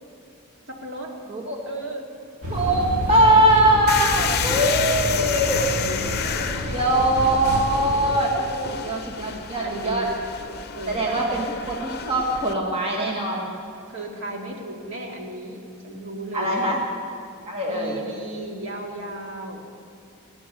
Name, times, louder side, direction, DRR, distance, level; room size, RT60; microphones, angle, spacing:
voice 1, 0.7-1.2 1.7-2.1 3.3-7.3 8.3-9.4 9.6-10.1 10.7-11.4 13.9-16.8 17.7-19.7, right 1 dB, 55° right, 0 dB, 2.2 m, -36 dB
sound 1, 2.4-8.0, equal, 75° right, 2.2 m, -29 dB
voice 2, 2.5-5.6 6.4-6.5 6.7-8.3 8.8-10.1 10.9-13.5 16.3-16.8 17.5-18.0, right 1 dB, 25° right, -2 dB, 1.8 m, -21 dB
sound 2, 3.9-12.5, left 7 dB, 45° left, 0.8 m, -30 dB
19.0 x 10.0 x 6.8 m, 2.7 s
head